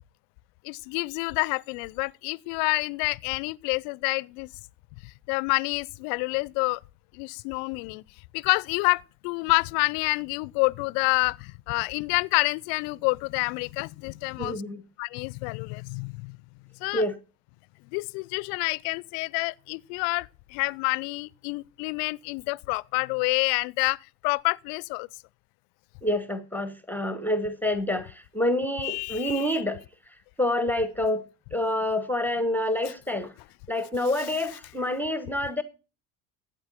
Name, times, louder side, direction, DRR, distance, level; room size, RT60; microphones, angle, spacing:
voice 1, 0.6-4.5 5.0-6.8 7.1-8.0 8.3-14.6 15.0-16.4 16.8-17.0 17.9-25.1 28.8-29.6 32.8-32.9 34.2-34.3, left 28 dB, 60° left, 0.6 m, -28 dB
voice 2, 14.4-14.8 16.9-17.1 26.0-29.8 30.4-31.2 31.5-33.3 33.7-35.6, left 1 dB, 5° left, 1.0 m, -27 dB
12.5 x 8.9 x 4.1 m
hypercardioid pair, 70°, 47 cm